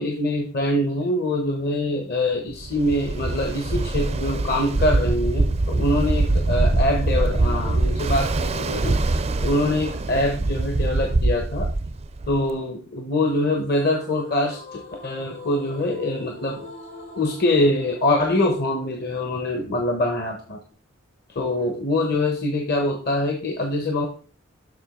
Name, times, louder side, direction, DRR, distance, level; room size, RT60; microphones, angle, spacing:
voice 1, 0.0-11.7 12.3-16.6 17.1-20.6 21.3-24.1, left 1 dB, 50° left, 3 dB, 0.9 m, -24 dB
Ocean, 2.6-12.5, right 2 dB, 30° right, 0.4 m, -23 dB
sound 1, 13.7-20.7, left 2 dB, 75° left, 2.9 m, -44 dB
7.2 x 5.9 x 3.7 m, 0.40 s
head